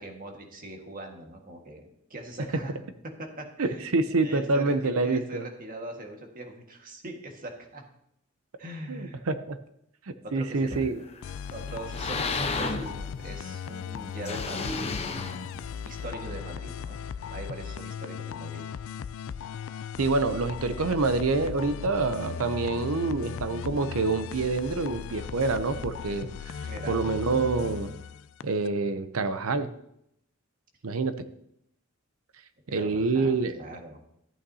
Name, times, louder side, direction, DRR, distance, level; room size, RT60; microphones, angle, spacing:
voice 1, 0.0-2.7 3.2-3.9 4.2-7.8 8.6-9.2 10.2-10.9 11.5-15.1 15.8-17.0 17.3-18.6 26.6-27.0 32.7-34.0, right 1 dB, 40° right, 2 dB, 1.7 m, -41 dB
voice 2, 3.6-5.4 8.9-9.6 10.3-11.0 20.0-26.3 26.9-27.9 28.4-29.7 30.8-31.1 32.7-33.6, right 3 dB, 75° right, 11 dB, 0.7 m, -26 dB
sound 1, 10.7-11.3 11.7-13.5 14.2-16.0, left 3 dB, 30° left, 0.9 m, -33 dB
sound 2, 11.2-28.7, left 7 dB, 65° left, 0.3 m, -37 dB
14.0 x 8.6 x 2.8 m, 0.76 s
head